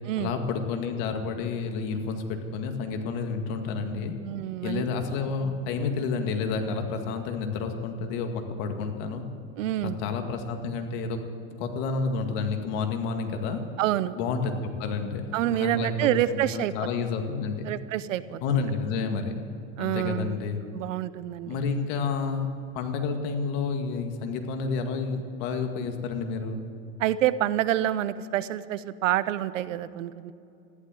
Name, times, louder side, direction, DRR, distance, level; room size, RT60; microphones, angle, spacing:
voice 1, 0.2-4.1 4.6-9.2 9.8-11.2 11.6-13.6 14.1-17.7 18.4-19.3 19.8-20.6 21.5-22.5 22.7-26.6, left 4 dB, 60° left, 5 dB, 2.1 m, -30 dB
voice 2, 4.2-4.8 9.6-10.0 13.8-14.2 15.3-16.7 17.6-18.6 19.8-20.4 20.7-21.6 27.0-30.3, right 13 dB, 85° right, 15 dB, 0.8 m, -27 dB
14.5 x 11.5 x 7.7 m, 2.5 s
supercardioid pair, 115°, 37 cm